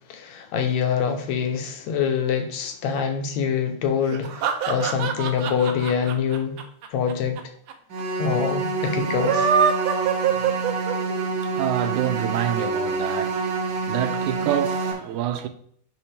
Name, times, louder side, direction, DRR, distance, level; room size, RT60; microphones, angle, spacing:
voice 1, 0.1-6.6 6.9-7.4 8.2-9.5, left 7 dB, 75° left, 2.0 m, -25 dB
sound 1, 4.1-7.4 7.7-7.8 8.0-8.1 9.1-11.2, right 7 dB, 70° right, 1.8 m, -23 dB
sound 2, 7.9-14.9, right 3 dB, 45° right, 1.4 m, -27 dB
voice 2, 11.4-15.5, right 12 dB, 85° right, 2.1 m, -27 dB
10.0 x 3.9 x 3.3 m
omnidirectional pair, 3.4 m